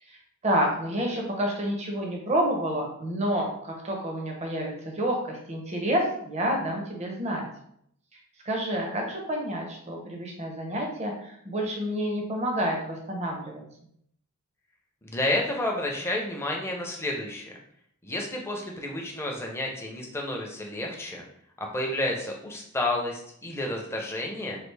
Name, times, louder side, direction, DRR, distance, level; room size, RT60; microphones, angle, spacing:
voice 1, 0.4-7.5 8.4-13.6, equal, 30° right, 1 dB, 0.6 m, -29 dB
voice 2, 15.0-17.5 18.0-21.2 21.6-24.6, left 1 dB, 10° left, 0 dB, 0.5 m, -30 dB
3.2 x 2.4 x 3.2 m, 0.70 s
head